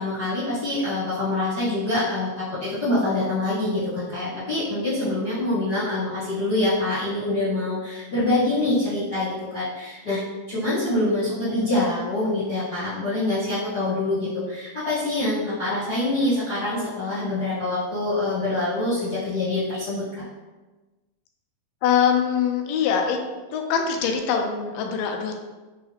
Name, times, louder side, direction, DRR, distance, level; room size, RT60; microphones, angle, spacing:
voice 1, 0.0-10.2 10.5-20.2, left 2 dB, 50° left, -13 dB, 1.3 m, -25 dB
voice 2, 21.8-23.2 23.5-25.3, left 7 dB, 85° left, 3 dB, 2.2 m, -23 dB
5.2 x 2.3 x 3.3 m, 1.2 s
omnidirectional pair, 3.8 m